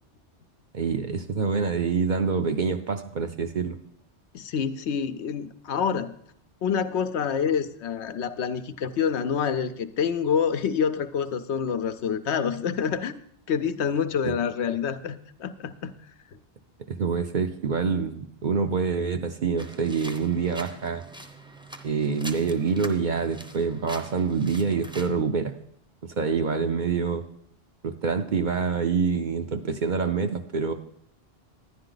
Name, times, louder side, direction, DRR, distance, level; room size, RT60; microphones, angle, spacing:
voice 1, 0.7-3.8 14.2-14.3 16.9-21.0 21.8-25.5 26.0-27.2 27.8-30.7, right 5 dB, 50° right, 7 dB, 0.7 m, -26 dB
voice 2, 4.3-6.1 6.6-13.2 13.5-15.9, left 7 dB, 75° left, 10 dB, 0.9 m, -27 dB
sound 1, 19.6-25.1, right 1 dB, 5° right, 0.6 m, -43 dB
11.5 x 10.5 x 3.9 m, 0.70 s
omnidirectional pair, 1.2 m